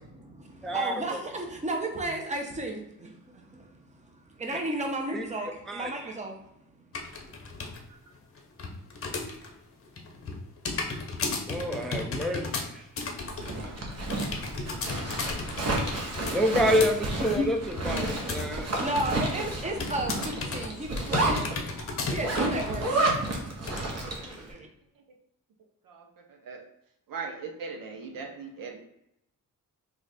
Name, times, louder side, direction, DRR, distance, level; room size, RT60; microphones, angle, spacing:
voice 1, 0.1-6.7 7.4-7.7 18.4-21.6 22.0-22.9 23.9-24.7, right 2 dB, 20° right, 3 dB, 0.7 m, -34 dB
voice 2, 0.6-1.2 5.1-5.2 5.7-5.9 11.4-12.8 16.3-18.8, equal, ahead, 3 dB, 0.3 m, -28 dB
sound 1, 6.9-7.8 8.1-9.5 9.8-18.6 18.8-19.4 19.8-22.8 23.1-23.2 23.7-23.8, left 3 dB, 40° left, 0.7 m, -34 dB
Zipper (clothing), 13.2-24.4, right 2 dB, 50° right, 0.9 m, -31 dB
voice 3, 25.8-26.6 27.1-28.8, right 5 dB, 85° right, 2 dB, 0.7 m, -39 dB
3.1 x 2.4 x 4.0 m, 0.82 s
cardioid pair, 90°, 33 cm